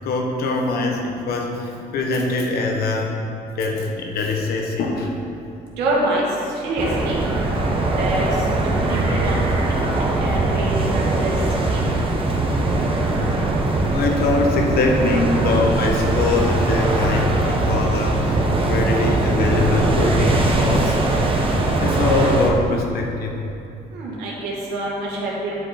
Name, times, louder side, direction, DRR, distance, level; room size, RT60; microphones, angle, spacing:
voice 1, 0.0-5.1 13.0-13.1 13.5-18.4 18.7-21.0 21.8-23.4, left 3 dB, 70° left, 1 dB, 1.3 m, -23 dB
voice 2, 5.8-6.3 6.6-7.2 8.0-8.2 8.8-9.4 9.7-9.8 10.2-11.3 11.6-11.9 23.9-25.6, right 2 dB, 90° right, -4 dB, 2.1 m, -25 dB
sound 1, 6.8-22.5, right 2 dB, 30° right, 1.0 m, -20 dB
10.5 x 5.3 x 4.3 m, 2.7 s
cardioid pair, 110°, 17 cm